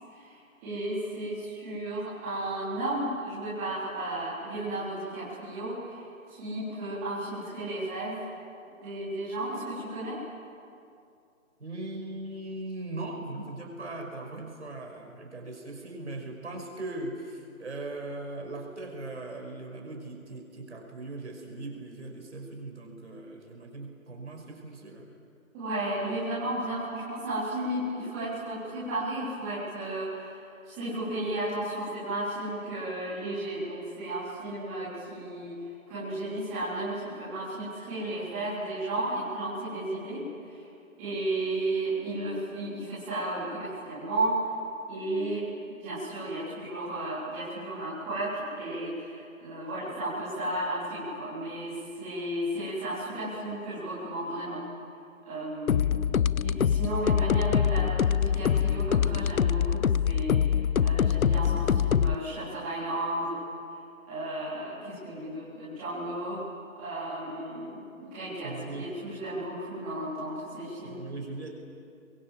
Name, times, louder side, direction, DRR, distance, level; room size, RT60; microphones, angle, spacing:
voice 1, 0.1-6.0 6.3-8.2 8.8-10.2 25.5-35.5 35.9-40.2 40.5-40.7 41.0-44.4 44.9-45.4 45.8-54.6 55.2-63.3 64.1-66.4 66.8-71.0, right 1 dB, 10° right, -12 dB, 4.1 m, -34 dB
voice 2, 11.6-25.1 68.4-68.9 70.8-71.5, right 2 dB, 55° right, 1 dB, 5.7 m, -39 dB
sound 1, 55.7-62.1, left 8 dB, 80° left, 0.6 m, -24 dB
30.0 x 23.5 x 7.7 m, 2.5 s
figure-of-eight pair, 170°, 41 cm